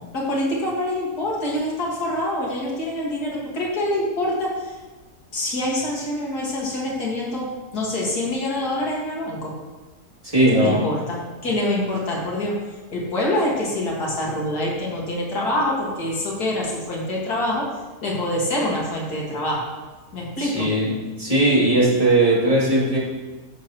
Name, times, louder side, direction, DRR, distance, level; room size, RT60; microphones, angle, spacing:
voice 1, 0.1-4.8 5.3-9.5 10.5-12.6 12.9-17.8 18.0-19.7 20.1-20.7, left 1 dB, 70° left, -3 dB, 2.3 m, -25 dB
voice 2, 10.2-10.8 20.4-20.9 21.2-23.0, right 1 dB, 20° right, -7 dB, 2.5 m, -18 dB
14.0 x 6.7 x 3.0 m, 1.3 s
omnidirectional pair, 1.7 m